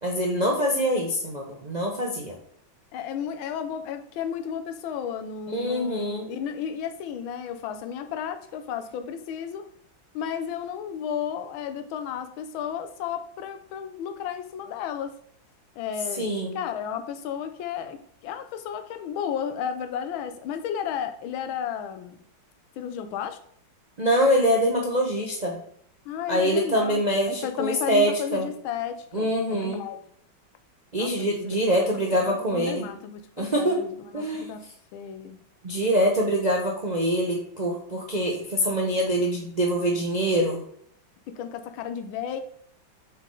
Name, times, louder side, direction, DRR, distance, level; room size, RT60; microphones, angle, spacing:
voice 1, 0.0-2.4 5.5-6.3 16.2-16.6 24.0-25.6 26.3-28.5 29.1-29.8 30.9-32.9 33.4-33.8 34.1-34.5 35.6-40.6, equal, 50° right, -1 dB, 0.5 m, -24 dB
voice 2, 2.9-9.7 10.1-15.2 15.8-16.3 16.5-18.0 18.2-22.2 22.8-23.4 26.0-30.0 31.0-31.7 32.4-34.6 34.9-35.4 41.3-42.4, left 8 dB, 80° left, 9 dB, 1.5 m, -33 dB
6.7 x 4.4 x 3.8 m, 0.66 s
omnidirectional pair, 2.2 m